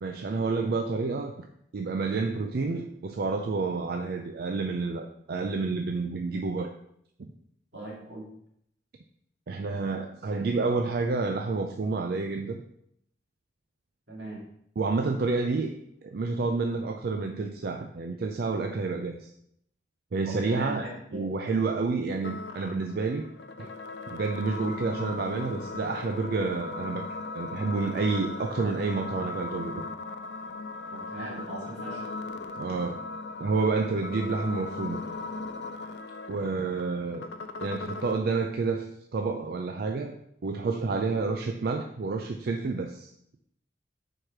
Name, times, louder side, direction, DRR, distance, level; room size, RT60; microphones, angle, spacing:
voice 1, 0.0-1.3 1.7-6.7 9.5-12.6 14.8-15.7 16.0-19.3 20.1-23.3 23.6-23.7 24.1-27.1 27.3-29.8 32.5-33.0 33.4-35.0 36.3-37.3 37.6-40.2 40.4-43.1, right 4 dB, 60° right, 4 dB, 0.4 m, -29 dB
voice 2, 7.7-8.3 14.1-14.4 20.2-21.2 30.9-32.0, right 2 dB, 90° right, -3 dB, 2.3 m, -39 dB
sound 1, 22.2-38.2, left 3 dB, 75° left, 0.5 m, -38 dB
4.8 x 4.4 x 4.8 m, 0.71 s
head